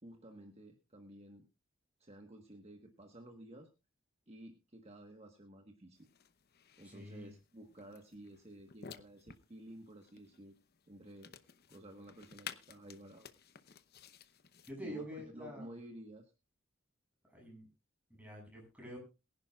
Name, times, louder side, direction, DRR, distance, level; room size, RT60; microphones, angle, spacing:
voice 1, 0.0-1.5 2.0-3.7 4.3-6.1 6.8-10.6 10.9-11.3 11.7-13.3 14.8-16.3, right 1 dB, 30° right, 4 dB, 1.4 m, -53 dB
sound 1, 6.0-14.7, left 8 dB, 50° left, 0.8 m, -55 dB
voice 2, 6.8-7.3 14.7-15.7 17.3-17.7 18.2-19.0, equal, 5° right, -2 dB, 7.6 m, -47 dB
22.5 x 11.0 x 2.4 m, 0.29 s
head